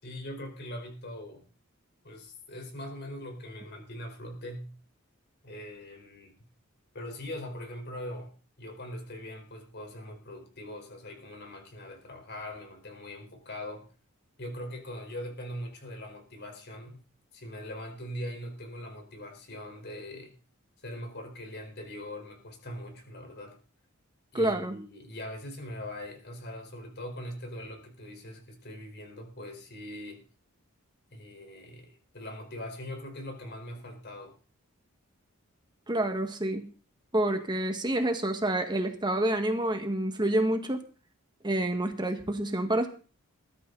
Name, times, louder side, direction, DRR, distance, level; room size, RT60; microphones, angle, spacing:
voice 1, 0.0-1.4 2.0-4.7 5.4-6.3 6.9-8.3 8.6-13.9 14.4-17.0 17.3-20.3 20.8-23.6 24.3-30.2 31.1-34.4, left 1 dB, 50° left, 4 dB, 4.7 m, -41 dB
voice 2, 24.3-24.8 35.9-36.7 37.1-40.8 41.4-42.9, right 1 dB, 20° right, 6 dB, 1.7 m, -28 dB
21.0 x 13.0 x 4.1 m, 0.37 s
head